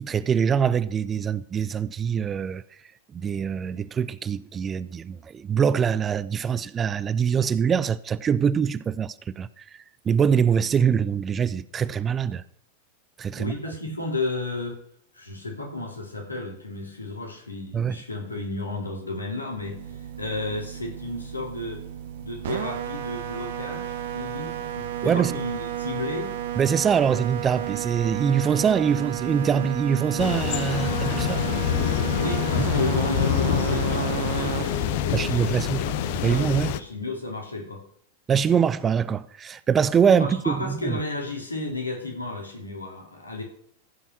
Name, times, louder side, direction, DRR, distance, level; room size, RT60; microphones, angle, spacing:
voice 1, 0.0-2.6 3.1-12.4 13.2-13.5 17.7-18.0 25.0-25.4 26.6-31.4 35.1-36.8 38.3-41.0, right 7 dB, 20° right, 0.5 m, -24 dB
voice 2, 13.4-14.8 15.1-21.8 22.2-26.3 32.2-37.8 40.2-43.4, left 2 dB, 80° left, 2.9 m, -33 dB
sound 1, 19.5-36.7, right 10 dB, 55° right, 1.1 m, -32 dB
sound 2, 30.2-36.8, left 12 dB, 50° left, 0.7 m, -26 dB
15.0 x 5.6 x 6.1 m
figure-of-eight pair, 90°, 0 cm